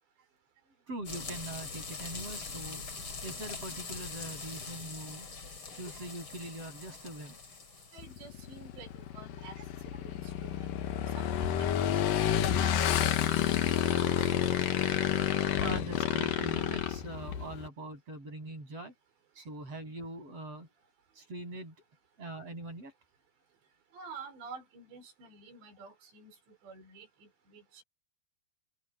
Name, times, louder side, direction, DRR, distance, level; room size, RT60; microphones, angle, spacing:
voice 1, 0.9-5.3 5.8-7.4 12.1-12.2 12.8-12.9 13.8-14.2 14.5-14.6 15.0-18.9 19.3-20.7 21.2-21.8 22.2-22.9, right 2 dB, 35° right, 8.9 m, -43 dB
sound 1, 1.0-8.5, left 4 dB, 30° left, 4.4 m, -43 dB
voice 2, 7.9-9.6 9.8-10.8 11.1-14.3 23.9-27.8, right 4 dB, 85° right, 7.3 m, -50 dB
Motorcycle / Engine, 8.0-17.7, left 10 dB, 65° left, 2.7 m, -30 dB
omnidirectional pair, 4.9 m